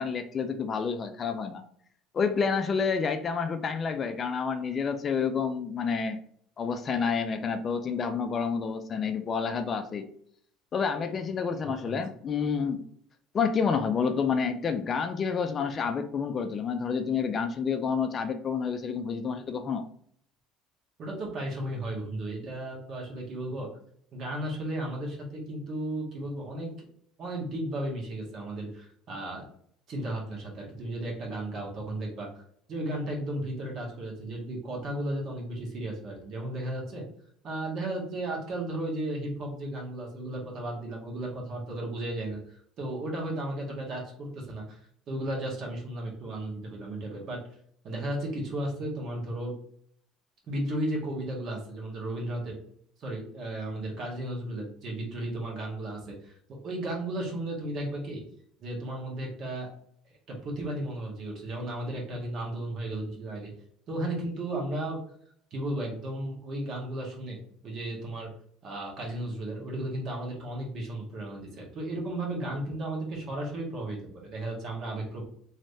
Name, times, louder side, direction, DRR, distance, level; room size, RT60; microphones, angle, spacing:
voice 1, 0.0-1.6 2.1-6.2 6.6-10.0 10.7-12.8 13.3-19.8, left 6 dB, 35° left, 8 dB, 0.4 m, -29 dB
voice 2, 21.0-23.7 24.1-26.7 27.2-29.4 29.9-32.4 32.7-37.0 37.4-44.8 45.1-47.4 47.8-49.5 50.5-52.6 53.0-56.4 56.6-58.2 58.6-59.7 60.3-63.5 63.9-65.0 65.5-68.3 68.6-75.3, right 1 dB, 50° right, -1 dB, 1.5 m, -34 dB
3.2 x 3.1 x 2.7 m, 0.63 s
supercardioid pair, 110°, 0 cm